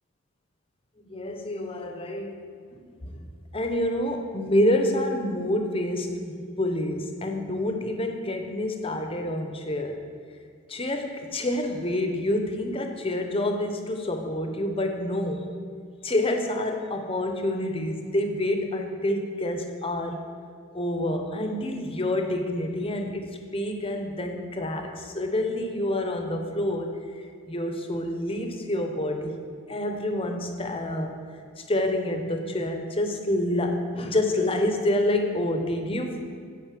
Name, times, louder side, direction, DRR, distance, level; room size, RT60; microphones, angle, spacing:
voice 1, 1.0-2.4 2.7-2.8 3.1-10.0 10.7-15.5 16.0-20.2 20.7-23.3 23.5-29.4 29.7-31.2 31.6-36.2, left 1 dB, 25° left, 5 dB, 0.7 m, -28 dB
9.0 x 5.1 x 7.5 m, 2.2 s
head